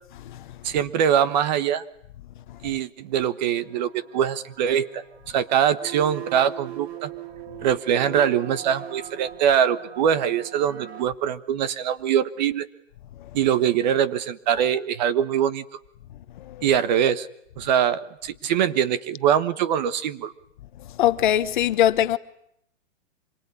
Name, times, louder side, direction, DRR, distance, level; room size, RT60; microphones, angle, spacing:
voice 1, 0.6-1.8 2.6-7.1 7.6-12.7 13.3-15.6 16.6-17.3 17.6-20.3, right 9 dB, 35° right, 1.3 m, -23 dB
sound 1, 3.8-11.0, right 12 dB, 55° right, 2.1 m, -40 dB
voice 2, 21.0-22.2, left 12 dB, 40° left, 1.1 m, -21 dB
26.0 x 23.5 x 9.8 m
hypercardioid pair, 165°, 37 cm